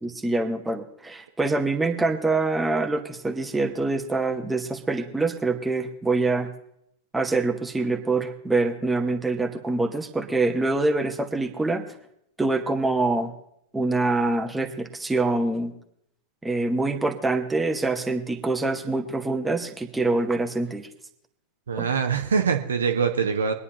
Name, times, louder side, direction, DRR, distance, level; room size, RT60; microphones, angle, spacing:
voice 1, 0.0-6.5 7.1-11.8 12.4-13.3 13.7-15.7 16.4-20.9 21.8-21.9, right 3 dB, 10° right, 5 dB, 1.2 m, -25 dB
voice 2, 21.7-23.5, right 6 dB, 70° right, 6 dB, 1.0 m, -23 dB
24.0 x 9.8 x 2.9 m, 0.76 s
figure-of-eight pair, 90°, 0 cm